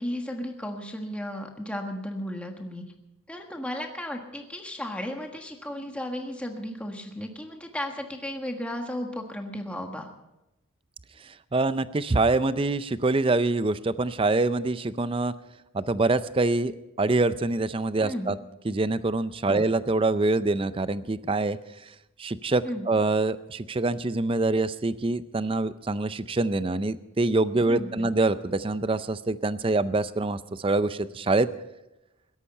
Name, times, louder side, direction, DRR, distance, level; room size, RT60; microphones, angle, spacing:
voice 1, 0.0-2.8 3.3-10.1 18.0-18.4 19.5-19.7 22.6-22.9 27.7-28.1, left 1 dB, 5° left, 3 dB, 1.4 m, -34 dB
voice 2, 11.5-15.3 15.7-16.7 17.0-18.4 18.7-21.6 22.2-31.5, right 2 dB, 25° right, 14 dB, 0.5 m, -25 dB
17.0 x 13.0 x 5.5 m, 0.95 s
head